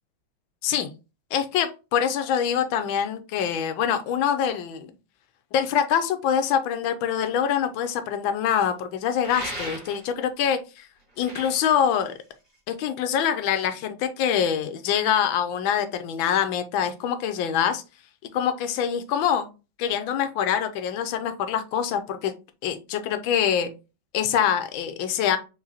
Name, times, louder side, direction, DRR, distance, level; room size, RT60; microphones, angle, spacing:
voice 1, 1.3-4.9 5.5-10.9 11.2-12.1 12.7-17.8 18.3-19.5 19.8-22.3 22.6-23.7 24.1-25.4, left 8 dB, 90° left, 9 dB, 1.4 m, -25 dB
sound 1, 9.2-10.2 11.0-12.7, equal, 15° left, 2.0 m, -37 dB
4.8 x 3.7 x 2.8 m, 0.30 s
omnidirectional pair, 2.1 m